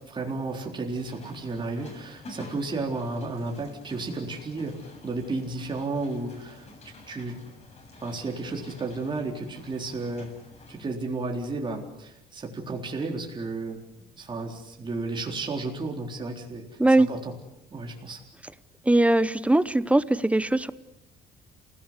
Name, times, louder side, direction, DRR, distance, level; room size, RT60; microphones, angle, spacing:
voice 1, 0.1-4.7 5.0-6.7 7.1-7.3 8.0-10.3 10.7-13.8 14.1-16.6 17.1-17.2 17.7-18.2, right 3 dB, 30° right, 0 dB, 3.9 m, -32 dB
sound 1, 0.9-10.8, left 2 dB, 40° left, 7.7 m, -49 dB
voice 2, 18.9-20.7, right 2 dB, 10° right, 16 dB, 0.9 m, -20 dB
28.0 x 17.5 x 8.3 m, 0.91 s
cardioid pair, 110°, 17 cm